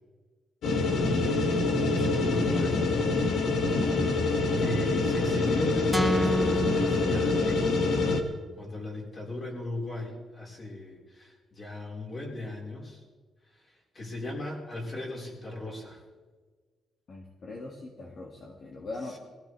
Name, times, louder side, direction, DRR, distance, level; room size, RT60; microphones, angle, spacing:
sound 1, 0.6-8.2, left 3 dB, 75° left, 1.8 m, -25 dB
voice 1, 1.2-3.1 4.6-13.0 13.9-16.0 19.0-19.2, left 1 dB, 30° left, -2 dB, 4.5 m, -38 dB
sound 2, 5.9-8.0, right 1 dB, ahead, 0.8 m, -31 dB
voice 2, 17.1-19.2, left 2 dB, 50° left, -1 dB, 2.2 m, -41 dB
22.5 x 16.0 x 3.3 m, 1.4 s
cardioid pair, 135°, 0 cm